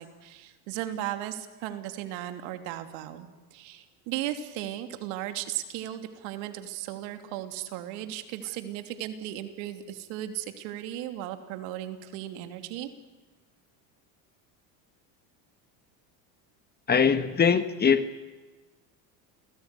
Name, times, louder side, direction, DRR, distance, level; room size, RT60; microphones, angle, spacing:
voice 1, 0.0-12.9, right 12 dB, 70° right, 8 dB, 3.1 m, -36 dB
voice 2, 16.9-18.1, left 6 dB, 20° left, 12 dB, 1.5 m, -22 dB
29.5 x 19.5 x 9.9 m, 1.3 s
supercardioid pair, 125°, 43 cm